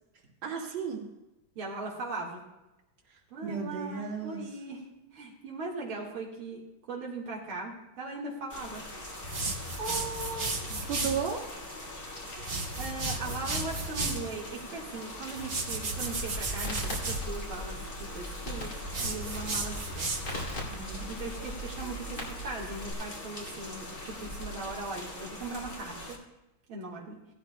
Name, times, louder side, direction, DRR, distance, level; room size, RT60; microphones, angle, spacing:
voice 1, 0.4-1.0 3.1-4.4 9.3-10.6 10.9-11.4 20.7-21.1, right 6 dB, 70° right, -2 dB, 2.5 m, -35 dB
voice 2, 1.6-2.4 3.3-4.8 5.1-6.6 6.9-8.8 10.7-10.8 12.8-20.1 21.1-26.2 26.7-27.2, right 3 dB, 90° right, -3 dB, 2.4 m, -39 dB
sound 1, 8.5-26.2, left 1 dB, 30° left, 1.7 m, -42 dB
sound 2, 9.2-11.2 12.4-14.3 15.4-17.2 18.9-20.5, right 3 dB, 35° right, 1.2 m, -34 dB
Crackle, 16.0-22.9, equal, 50° left, 3.1 m, -40 dB
17.0 x 13.0 x 2.2 m, 1.0 s
omnidirectional pair, 2.2 m